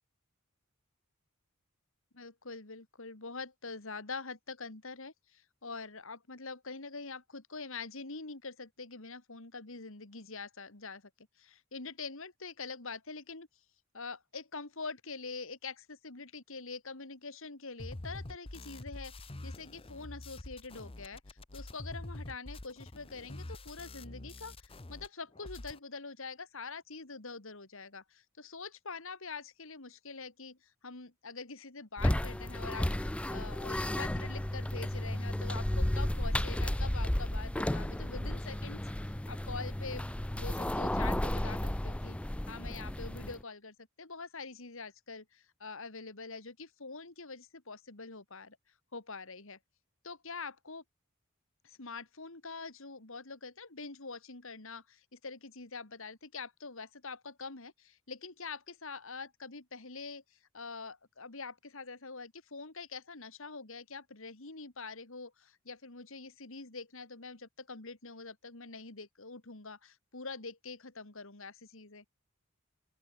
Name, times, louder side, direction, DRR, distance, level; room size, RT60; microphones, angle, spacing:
voice 1, 2.1-13.5 13.9-40.1 40.4-42.2 42.5-48.6 48.9-49.6 50.0-50.8 51.6-72.0, left 4 dB, 70° left, 2.5 m, -45 dB
sound 1, 17.8-25.1 25.3-25.8, left 1 dB, 25° left, 1.0 m, -46 dB
sound 2, 32.0-43.4, left 1 dB, 5° left, 0.4 m, -33 dB
open air
head